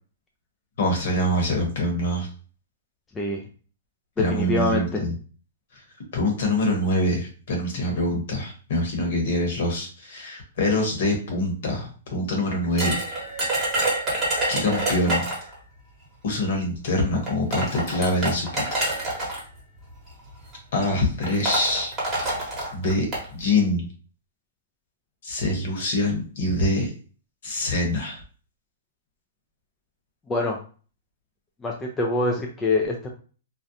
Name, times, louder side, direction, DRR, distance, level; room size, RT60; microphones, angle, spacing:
voice 1, 0.8-2.3 4.2-5.1 6.1-13.0 14.5-15.3 16.2-18.6 20.7-21.9 22.7-23.1 23.3-23.8 25.2-26.9 27.4-28.2, left 1 dB, 60° left, 1 dB, 1.0 m, -24 dB
voice 2, 4.2-5.0 30.3-30.6 31.6-33.1, left 2 dB, 10° left, -1 dB, 0.3 m, -25 dB
sound 1, 12.8-15.5 16.6-16.7 17.3-19.4 20.3-20.5 20.8-20.9 21.2-23.3, right 1 dB, 15° right, 1.0 m, -27 dB
2.4 x 2.1 x 2.7 m, 0.39 s
hypercardioid pair, 160°, 0 cm